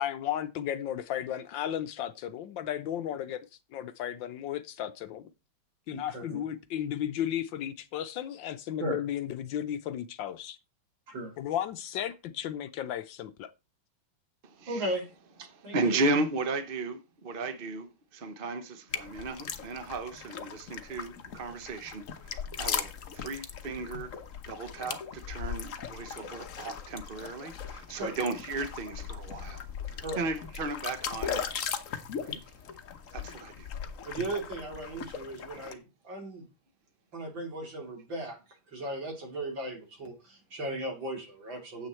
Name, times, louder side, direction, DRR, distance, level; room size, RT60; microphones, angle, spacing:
voice 1, 0.0-3.5 3.7-5.3 5.9-10.6 11.4-13.5, left 10 dB, 70° left, 1.3 m, -34 dB
voice 2, 5.9-6.4 8.8-9.0 11.1-11.3 14.7-15.1 15.6-16.0 27.9-28.1 30.0-30.2 34.0-36.4 37.1-38.4 38.7-41.9, right 1 dB, 65° right, 3.8 m, -36 dB
voice 3, 14.4-14.8 15.4-24.1 24.5-31.4 32.2-32.4 33.1-33.7, right 3 dB, 40° right, 0.7 m, -35 dB
sound 1, 18.9-35.7, left 7 dB, 50° left, 1.1 m, -39 dB
9.4 x 8.0 x 4.3 m
omnidirectional pair, 2.3 m